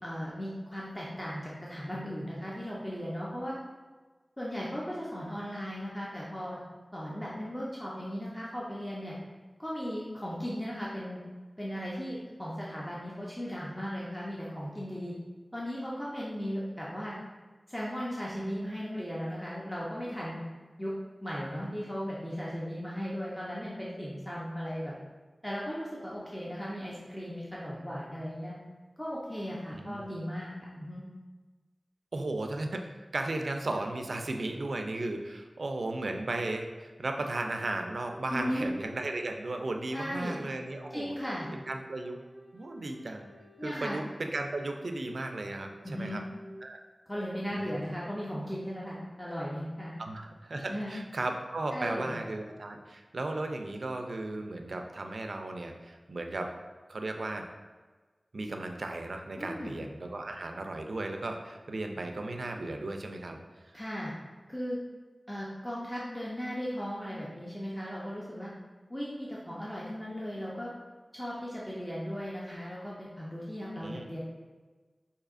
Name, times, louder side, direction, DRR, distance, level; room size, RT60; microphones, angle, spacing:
voice 1, 0.0-3.6 4.4-6.6 6.9-9.1 9.6-11.2 11.6-15.1 15.5-17.1 17.7-20.4 20.8-20.9 21.2-24.9 25.4-28.5 29.0-31.0 38.3-38.7 39.9-40.4 40.9-41.5 43.6-44.0 45.8-46.2 47.1-49.9 50.7-50.9 51.7-52.1 59.4-59.8 63.7-64.1 64.5-64.8 65.3-68.5 68.9-70.7 71.1-74.2, equal, 15° left, -6 dB, 0.6 m, -37 dB
voice 2, 29.7-30.0 32.1-41.1 41.7-42.2 42.5-43.3 43.6-46.2 46.6-46.8 47.5-47.7 50.0-56.5 56.9-57.5 58.3-63.4 63.7-63.8 73.8-74.1, right 2 dB, 80° right, 4 dB, 0.3 m, -35 dB
Wind instrument woodwind instrument, 38.0-46.6, right 1 dB, 40° left, 1.5 m, -53 dB
4.8 x 2.7 x 2.4 m, 1.3 s
wide cardioid pair, 55°, 0 cm